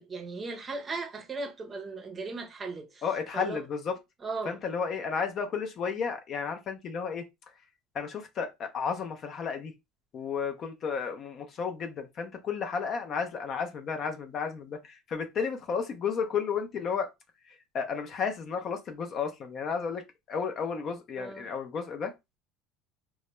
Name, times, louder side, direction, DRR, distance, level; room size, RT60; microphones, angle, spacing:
voice 1, 0.0-3.0 3.3-3.6 4.2-4.6 21.2-21.5, right 3 dB, 25° right, 0.7 m, -37 dB
voice 2, 3.0-3.9 4.4-7.3 7.9-9.7 10.1-17.1 17.5-22.1, left 6 dB, 40° left, 0.5 m, -33 dB
2.2 x 2.1 x 2.9 m
supercardioid pair, 125°, 0 cm